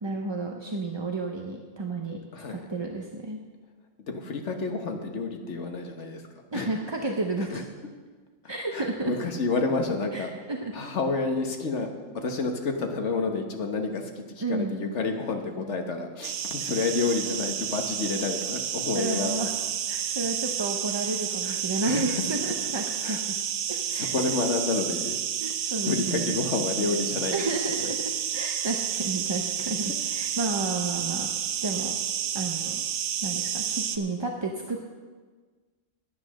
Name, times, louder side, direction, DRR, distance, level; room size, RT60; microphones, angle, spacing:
voice 1, 0.0-2.2 2.5-3.4 6.5-7.5 8.5-9.1 10.1-10.7 14.4-14.8 18.9-19.5 19.9-23.4 23.7-24.4 25.4-26.4 27.3-31.3 31.6-32.0 32.3-32.8 33.2-34.9, right 2 dB, 30° right, 1 dB, 0.6 m, -31 dB
voice 2, 4.0-6.2 6.5-6.7 7.5-7.6 8.7-10.3 10.7-11.9 12.1-19.3 21.4-21.6 21.9-22.2 22.6-22.7 23.0-23.2 23.9-25.2 25.8-27.4, left 3 dB, 65° left, 4 dB, 1.5 m, -29 dB
sound 1, 16.2-34.0, right 9 dB, 80° right, 1.1 m, -30 dB
10.0 x 9.5 x 6.3 m, 1.4 s
omnidirectional pair, 1.3 m